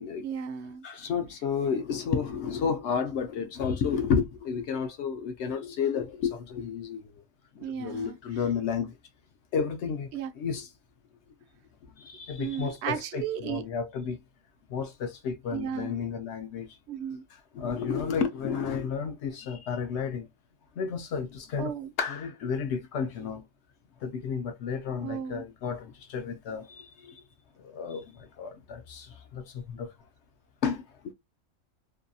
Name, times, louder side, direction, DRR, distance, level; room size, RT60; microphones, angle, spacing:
voice 1, 0.2-0.8 7.6-8.2 10.1-10.3 12.4-13.6 15.5-16.0 16.9-17.2 21.6-21.9 25.0-25.4, right 8 dB, 65° right, 0.7 m, -34 dB
voice 2, 0.8-7.1 7.6-8.9 9.5-10.7 12.0-14.2 14.7-16.7 17.3-20.3 20.8-23.4 24.0-27.2 27.6-29.9 30.6-31.1, left 6 dB, 65° left, 0.8 m, -32 dB
2.7 x 2.2 x 2.6 m
omnidirectional pair, 1.4 m